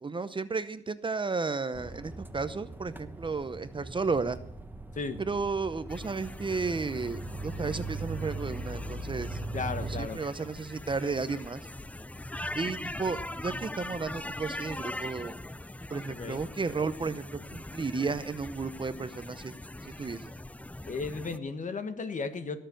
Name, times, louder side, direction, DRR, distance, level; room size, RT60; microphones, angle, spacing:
voice 1, 0.0-4.4 5.2-9.4 9.9-11.6 12.5-15.3 15.9-19.5 19.8-20.3, right 4 dB, 25° right, 13 dB, 0.7 m, -33 dB
sound 1, 1.7-10.1, right 2 dB, 10° right, 1.1 m, -39 dB
sound 2, 5.9-21.4, left 1 dB, 5° left, 0.5 m, -41 dB
voice 2, 9.5-10.2 16.1-16.4 20.9-22.6, left 4 dB, 40° left, 10 dB, 1.6 m, -35 dB
18.0 x 6.8 x 7.7 m, 0.72 s
cardioid pair, 100°, 19 cm